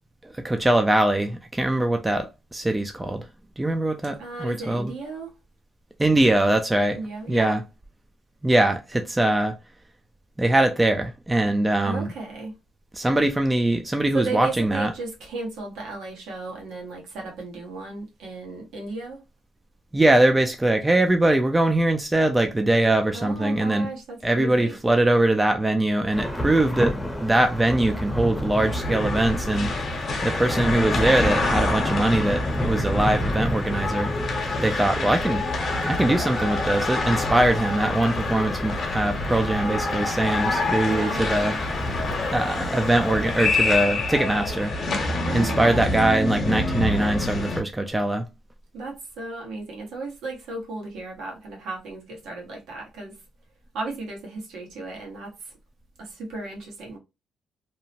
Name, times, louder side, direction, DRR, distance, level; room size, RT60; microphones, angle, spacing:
voice 1, 0.2-3.3 3.6-4.9 6.0-7.0 7.3-7.6 8.4-9.5 10.4-12.1 12.9-14.9 19.9-23.9 24.2-29.7 30.2-34.1 34.6-35.4 35.8-41.5 42.3-44.7 45.3-48.3, right 1 dB, 15° right, 0.4 m, -22 dB
voice 2, 4.2-5.3 6.9-7.6 11.8-12.5 14.1-19.2 23.1-24.8 40.8-41.6 45.2-45.9 48.7-53.1 53.7-55.5 56.0-57.0, right 3 dB, 85° right, 1.1 m, -35 dB
Thunder / Rain, 26.1-43.8, equal, 10° left, 0.7 m, -32 dB
sound 1, 28.6-47.6, left 2 dB, 50° left, 0.8 m, -27 dB
2.7 x 2.0 x 2.8 m
cardioid pair, 90°, 0 cm